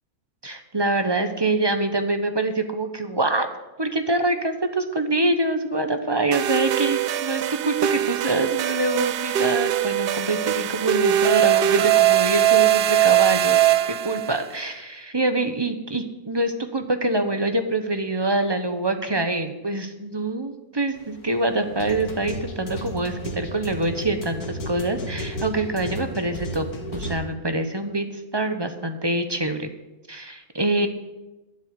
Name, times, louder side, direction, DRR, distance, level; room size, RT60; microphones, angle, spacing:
voice 1, 0.4-3.5 3.8-13.6 14.0-26.7 26.9-29.7 30.1-30.9, right 2 dB, 20° right, 7 dB, 0.8 m, -25 dB
sound 1, 6.3-14.4, right 13 dB, 90° right, 0.5 m, -21 dB
sound 2, 20.9-27.1, equal, 85° left, 2.2 m, -34 dB
11.5 x 7.9 x 8.1 m, 1.0 s
omnidirectional pair, 1.6 m